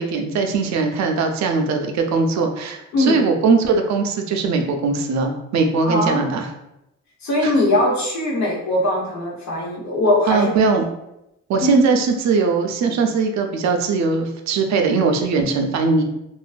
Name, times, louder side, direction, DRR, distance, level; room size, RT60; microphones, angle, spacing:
voice 1, 0.0-6.5 7.4-7.5 10.3-10.9 11.5-16.0, right 4 dB, 65° right, 4 dB, 0.5 m, -20 dB
voice 2, 5.8-6.3 7.2-10.5 11.6-11.8, left 1 dB, 65° left, -3 dB, 1.0 m, -20 dB
2.5 x 2.2 x 2.4 m, 0.85 s
cardioid pair, 90°, 30 cm